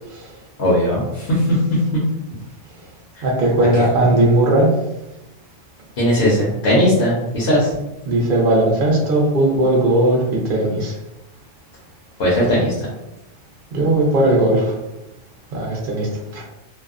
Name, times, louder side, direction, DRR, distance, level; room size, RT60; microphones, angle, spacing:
voice 1, 0.6-1.4 4.1-4.2 6.0-7.7 12.2-12.9, equal, 65° left, -5 dB, 0.9 m, -18 dB
voice 2, 3.2-4.7 8.0-11.0 13.7-14.8 15.5-16.4, right 1 dB, 55° right, -2 dB, 0.8 m, -17 dB
2.7 x 2.0 x 2.4 m, 0.95 s
omnidirectional pair, 1.2 m